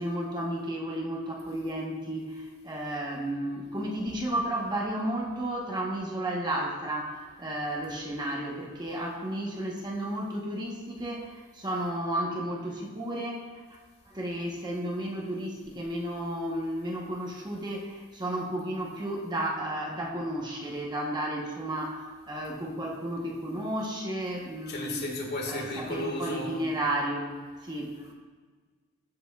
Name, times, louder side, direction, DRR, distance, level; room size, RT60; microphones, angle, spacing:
voice 1, 0.0-13.5 14.1-25.1 25.5-27.3 27.6-28.1, right 1 dB, 20° right, -1 dB, 1.0 m, -33 dB
voice 2, 24.7-26.7, left 2 dB, 50° left, 0 dB, 1.7 m, -34 dB
14.0 x 6.8 x 2.3 m, 1.5 s
head